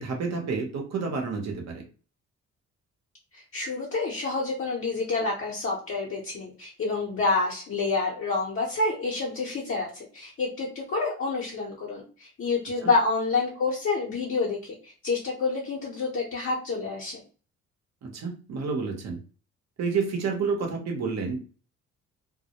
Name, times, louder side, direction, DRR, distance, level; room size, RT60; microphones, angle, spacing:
voice 1, 0.0-1.8 12.8-12.9 18.0-19.2 19.8-21.4, right 5 dB, 60° right, 3 dB, 0.9 m, -29 dB
voice 2, 3.3-17.2, left 3 dB, 45° left, -3 dB, 0.7 m, -28 dB
2.1 x 2.1 x 2.8 m, 0.37 s
cardioid pair, 90°, 30 cm